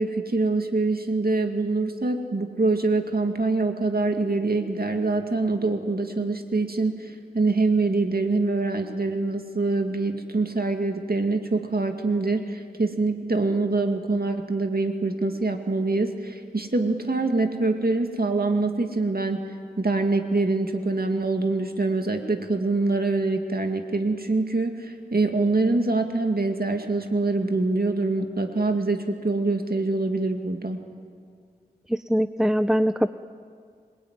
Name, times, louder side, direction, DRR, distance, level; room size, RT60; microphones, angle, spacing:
voice 1, 0.0-30.8, right 3 dB, 60° right, 5 dB, 2.3 m, -25 dB
voice 2, 31.9-33.1, equal, 5° right, 11 dB, 0.6 m, -22 dB
26.0 x 21.5 x 9.7 m, 2.1 s
wide cardioid pair, 50°, 17 cm